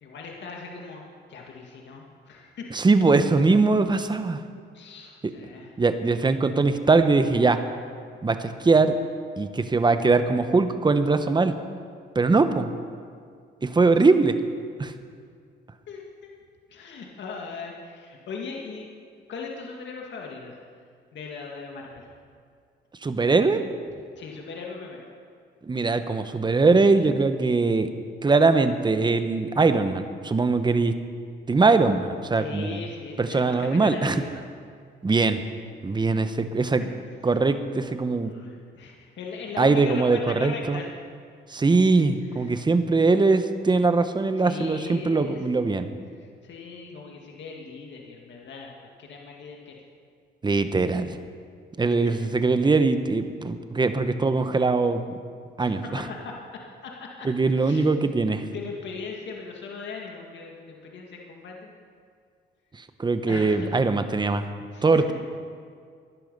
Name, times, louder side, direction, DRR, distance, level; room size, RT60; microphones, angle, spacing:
voice 1, 0.0-2.7 4.7-5.8 15.9-16.3 16.7-18.9 19.3-20.6 21.1-22.1 24.2-25.1 32.4-34.3 36.8-36.9 38.3-40.9 42.0-42.1 42.3-42.6 44.4-45.7 46.2-49.8 51.9-52.0 55.6-56.4 56.8-58.0 58.3-61.7 63.3-63.7 64.7-65.1, left 4 dB, 65° left, 0 dB, 2.0 m, -39 dB
voice 2, 2.7-4.4 5.8-7.6 8.2-8.9 9.4-11.5 12.1-12.7 13.6-14.3 14.8-14.9 23.0-23.6 25.6-27.9 28.2-30.9 31.5-32.8 33.2-34.2 35.0-35.4 35.8-36.8 37.2-38.3 39.6-40.8 41.5-45.9 50.4-51.1 51.8-55.0 55.6-56.0 57.2-58.4 63.0-64.5 64.8-65.1, right 3 dB, 20° right, 9 dB, 1.0 m, -21 dB
17.0 x 11.5 x 5.5 m, 2.1 s
cardioid pair, 90°, 20 cm